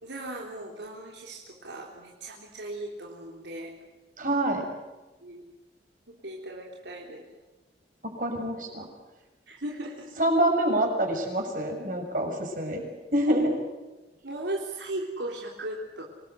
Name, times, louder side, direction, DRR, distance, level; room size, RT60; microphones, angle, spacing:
voice 1, 0.0-3.7 5.2-5.4 6.1-7.3 9.5-10.1 13.3-13.4 14.2-16.0, right 1 dB, 85° right, -1 dB, 3.6 m, -37 dB
voice 2, 4.2-4.6 8.0-8.9 10.2-12.8 13.1-13.5, right 1 dB, 50° right, 2 dB, 6.3 m, -26 dB
26.5 x 19.5 x 8.2 m, 1.1 s
head